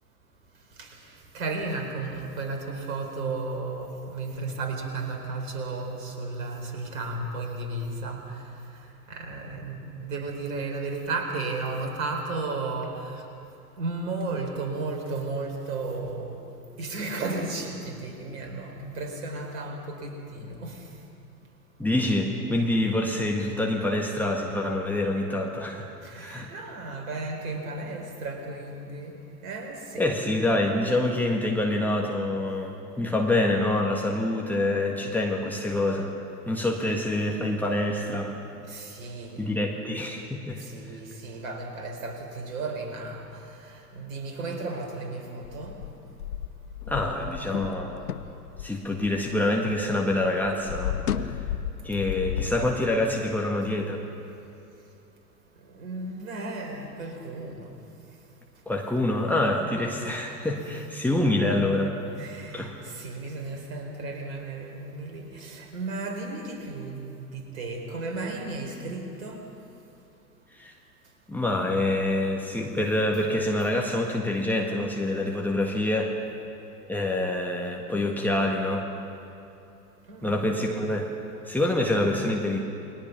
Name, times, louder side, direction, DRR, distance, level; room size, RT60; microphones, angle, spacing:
voice 1, 1.3-8.2 9.1-13.0 13.8-16.4 16.8-20.7 26.1-29.1 29.4-30.0 38.7-39.4 40.7-43.2 44.0-45.8 55.8-57.6 62.2-62.7 63.0-69.4 80.1-80.5, right 3 dB, 55° right, 3 dB, 4.4 m, -34 dB
voice 2, 21.8-26.5 30.0-36.1 36.5-38.3 39.4-40.6 46.9-48.0 48.6-51.0 51.3-51.4 51.8-54.0 58.6-62.0 62.5-62.8 70.6-70.7 71.3-76.1 76.9-78.9 80.2-81.1 81.5-82.6, left 1 dB, 5° left, -1 dB, 1.7 m, -26 dB
sound 1, 45.4-49.8 50.1-52.6, left 9 dB, 65° left, 1.0 m, -33 dB
29.5 x 21.0 x 5.8 m, 2.8 s
figure-of-eight pair, 95°, 48 cm